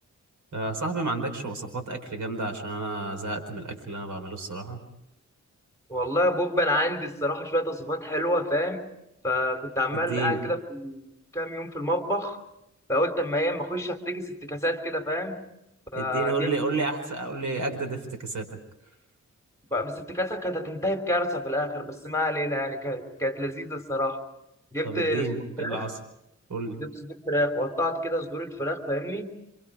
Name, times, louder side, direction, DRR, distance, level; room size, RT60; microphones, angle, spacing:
voice 1, 0.5-4.8 9.9-10.4 15.9-18.5 24.8-25.9 26.5-26.8, right 3 dB, 85° right, 6 dB, 4.8 m, -31 dB
voice 2, 5.9-8.8 9.2-11.1 11.3-12.4 12.9-15.4 15.9-16.5 19.7-24.2 24.7-25.3 25.6-25.9 26.8-29.3, equal, 10° left, 5 dB, 3.3 m, -28 dB
28.5 x 26.5 x 4.9 m, 0.87 s
wide cardioid pair, 100°, 30 cm